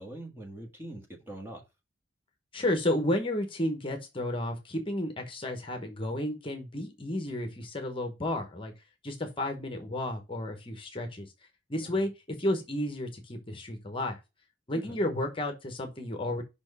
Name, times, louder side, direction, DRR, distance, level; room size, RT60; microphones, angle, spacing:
voice 1, 0.0-1.6 11.8-12.1 14.7-15.0, right 1 dB, 15° right, 1.5 m, -43 dB
voice 2, 2.5-8.7 9.0-11.3 11.7-12.1 12.4-14.2 14.7-16.4, left 1 dB, 30° left, 1.0 m, -32 dB
5.4 x 4.4 x 5.3 m
head